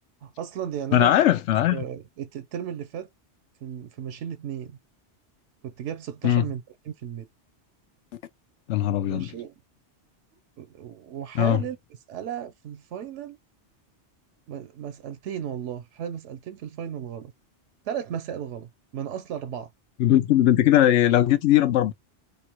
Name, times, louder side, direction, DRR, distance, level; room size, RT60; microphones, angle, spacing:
voice 1, 0.2-1.1 1.7-3.1 3.6-4.8 5.6-7.3 9.1-9.5 10.6-11.8 12.1-13.4 14.5-17.3 17.9-19.7, right 9 dB, 85° right, 0.9 m, -35 dB
voice 2, 0.9-1.8 6.2-6.4 8.7-9.3 11.3-11.6 20.0-21.9, left 12 dB, 90° left, 0.9 m, -19 dB
3.4 x 2.4 x 4.4 m
omnidirectional pair, 1.2 m